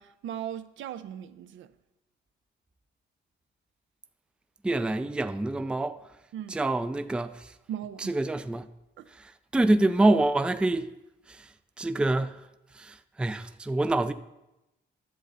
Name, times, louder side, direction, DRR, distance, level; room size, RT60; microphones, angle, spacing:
voice 1, 0.0-1.7 6.3-6.6 7.7-8.2 9.0-9.1, right 10 dB, 75° right, 0.5 m, -38 dB
voice 2, 4.6-6.0 6.5-7.5 8.1-8.7 9.5-10.9 11.4-11.5 11.8-12.4 12.8-14.1, right 2 dB, 5° right, 0.3 m, -26 dB
10.5 x 7.4 x 4.1 m
cardioid pair, 90°, 20 cm